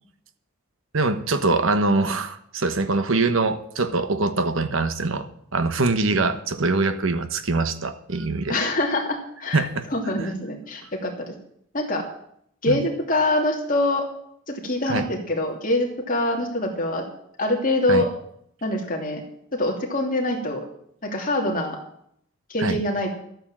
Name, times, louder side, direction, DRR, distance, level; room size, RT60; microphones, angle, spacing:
voice 1, 0.9-5.3 5.5-8.6 9.5-9.9 12.7-12.8 14.9-15.1 17.9-18.0 22.6-22.8, right 3 dB, 65° right, 10 dB, 1.2 m, -23 dB
voice 2, 8.5-9.7 9.9-11.3 11.7-12.0 12.6-14.0 14.5-17.0 17.4-18.1 18.6-19.2 19.5-20.7 21.0-21.8 22.5-23.1, left 1 dB, 40° left, 1 dB, 2.9 m, -24 dB
12.5 x 9.1 x 7.5 m, 0.70 s
head